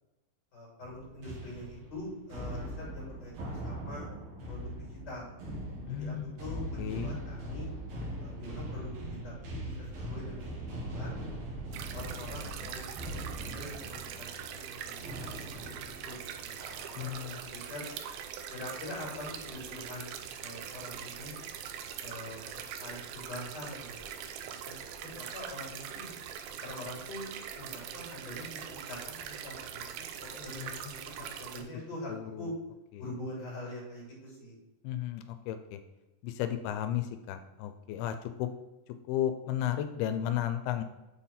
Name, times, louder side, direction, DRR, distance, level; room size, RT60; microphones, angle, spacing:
voice 1, 0.5-4.1 4.4-5.3 5.9-6.1 6.4-7.7 8.2-11.2 11.8-15.7 16.0-17.8 18.5-21.3 22.0-22.4 22.8-24.8 25.1-26.1 26.6-27.3 27.5-29.9 30.2-32.1 32.4-32.5 33.0-34.6, left 1 dB, 30° left, -4 dB, 2.8 m, -44 dB
sound 1, 0.8-17.4 17.8-18.1 18.7-19.2, right 1 dB, 60° right, 1.8 m, -41 dB
voice 2, 5.9-6.4 6.8-7.2 17.0-17.4 30.6-31.0 32.1-32.5 33.0-33.1 34.8-35.8 36.2-38.5 39.1-40.8, left 11 dB, 90° left, 9 dB, 2.5 m, -34 dB
sound 2, 11.7-31.6, right 8 dB, 85° right, 2.4 m, -42 dB
6.6 x 4.2 x 5.6 m, 1.0 s
omnidirectional pair, 4.4 m